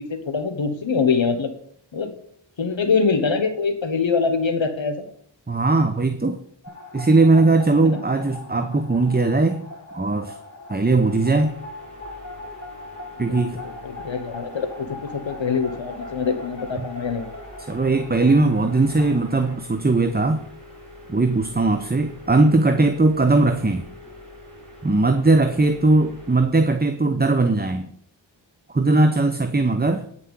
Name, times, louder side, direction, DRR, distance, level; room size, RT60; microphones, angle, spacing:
voice 1, 0.0-1.5 1.9-2.1 2.6-5.0 7.8-8.0 13.3-17.3, left 5 dB, 75° left, 7 dB, 1.3 m, -24 dB
voice 2, 5.5-6.4 6.9-9.7 9.9-10.4 10.7-11.6 13.2-13.6 17.7-20.4 21.1-23.8 24.8-27.9 28.7-30.1, right 3 dB, 20° right, 8 dB, 0.8 m, -19 dB
sound 1, 6.6-19.5, left 2 dB, 35° left, 3.6 m, -40 dB
sound 2, 11.0-26.5, left 1 dB, 5° left, 5.6 m, -44 dB
9.2 x 5.8 x 8.4 m, 0.64 s
wide cardioid pair, 55°, 47 cm